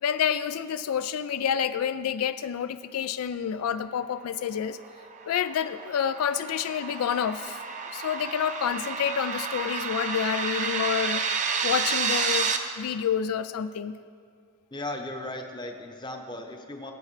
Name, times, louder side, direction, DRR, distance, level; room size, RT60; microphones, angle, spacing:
voice 1, 0.0-4.8 5.3-7.6 7.9-11.2 11.6-12.5 12.8-13.9, left 8 dB, 80° left, 12 dB, 0.3 m, -28 dB
sound 1, 4.8-12.6, right 5 dB, 35° right, 0.6 m, -30 dB
voice 2, 14.7-16.9, left 1 dB, 20° left, 4 dB, 0.8 m, -36 dB
19.0 x 8.4 x 3.3 m, 2.2 s
head